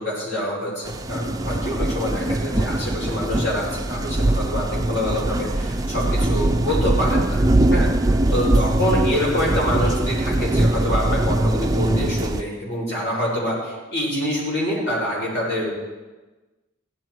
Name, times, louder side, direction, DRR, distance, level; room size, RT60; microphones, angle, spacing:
voice 1, 0.0-7.9 8.3-15.7, left 1 dB, 55° left, -5 dB, 5.5 m, -26 dB
sound 1, 0.8-12.4, right 1 dB, 15° right, 0.4 m, -22 dB
16.0 x 12.0 x 4.6 m, 1.2 s
head